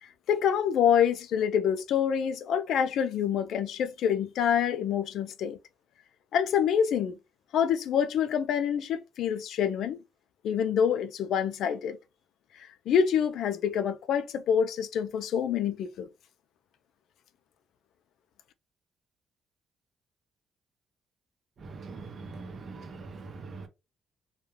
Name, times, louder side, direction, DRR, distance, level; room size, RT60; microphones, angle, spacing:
voice 1, 0.0-5.6 6.3-7.2 7.5-10.0 10.4-12.0 12.6-16.1, left 8 dB, 75° left, 0.4 m, -26 dB
voice 2, 21.6-23.7, right 4 dB, 50° right, 0.6 m, -42 dB
2.2 x 2.2 x 3.1 m
cardioid pair, 90°, 0 cm